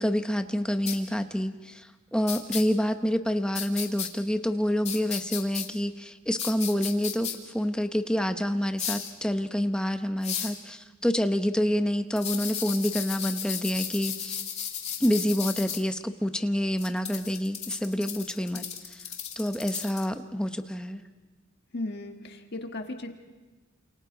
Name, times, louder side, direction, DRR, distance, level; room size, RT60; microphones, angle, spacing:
voice 1, 0.0-14.4 15.0-18.6 18.9-19.0 19.4-21.0, equal, 5° left, 7 dB, 0.9 m, -28 dB
sound 1, 0.9-1.0 2.3-2.6 3.5-4.1 4.8-5.7 6.4-7.3 8.8-9.1 10.2-10.6 12.2-15.8 16.8-20.1, left 8 dB, 35° left, 2.4 m, -34 dB
voice 2, 21.7-23.1, left 2 dB, 55° left, 4 dB, 1.6 m, -36 dB
29.0 x 28.0 x 4.0 m, 1.2 s
head